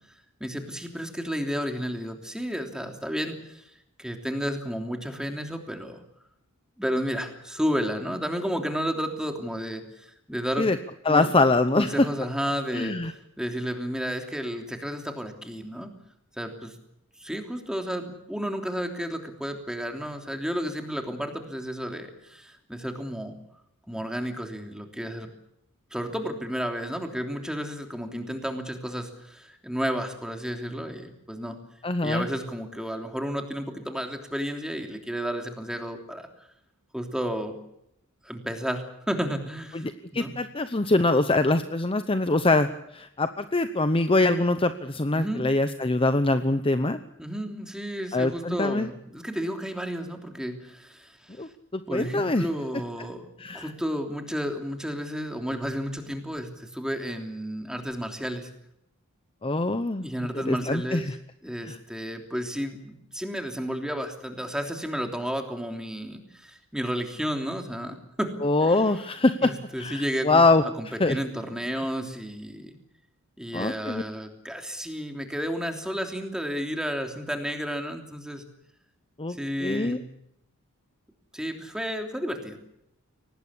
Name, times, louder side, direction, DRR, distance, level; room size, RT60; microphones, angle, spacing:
voice 1, 0.4-3.6 4.0-6.0 6.8-10.7 11.1-11.3 11.7-13.0 13.4-15.9 16.4-16.7 17.2-23.4 23.9-25.3 25.9-31.6 32.0-36.5 36.9-37.6 38.2-40.3 45.1-45.5 47.2-51.4 51.9-53.3 53.5-58.5 60.0-61.1 61.4-68.4 68.7-69.0 69.4-72.7 73.4-78.4 79.3-80.1 81.3-82.6, equal, 5° right, 4 dB, 3.2 m, -32 dB
voice 2, 11.1-11.9 12.7-13.1 31.8-32.3 39.7-47.0 48.1-48.9 51.4-52.4 53.4-53.7 59.4-60.1 60.3-61.0 61.6-61.8 68.4-69.5 69.8-70.6 71.0-71.2 73.5-74.0 79.2-80.0, left 2 dB, 25° left, 10 dB, 0.8 m, -24 dB
24.0 x 19.0 x 8.5 m, 0.78 s
head